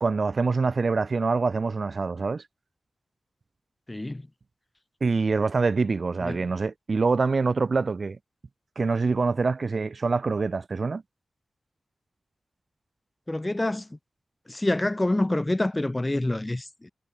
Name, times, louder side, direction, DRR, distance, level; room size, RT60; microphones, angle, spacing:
voice 1, 0.0-2.4 5.0-8.2 8.8-11.0, right 4 dB, 60° right, 2.0 m, -25 dB
voice 2, 3.9-4.3 6.2-6.5 13.3-14.0 14.5-16.9, left 1 dB, 20° left, 0.5 m, -27 dB
cardioid pair, 60°, 0 cm